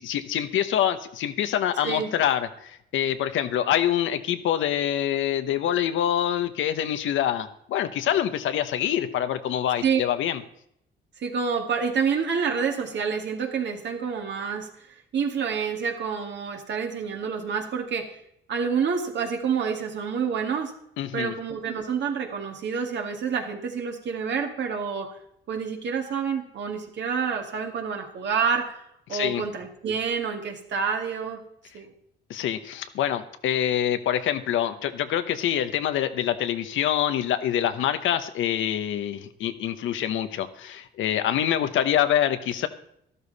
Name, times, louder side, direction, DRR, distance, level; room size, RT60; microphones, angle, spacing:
voice 1, 0.0-10.4 21.0-21.3 29.1-29.4 32.3-42.7, left 10 dB, 80° left, 10 dB, 1.0 m, -25 dB
voice 2, 11.2-14.7 15.1-18.1 18.5-20.7 21.1-25.1 25.5-28.8 29.1-31.4 31.7-31.9, right 6 dB, 65° right, 3 dB, 2.3 m, -28 dB
12.5 x 12.5 x 4.1 m, 0.73 s
cardioid pair, 90°, 20 cm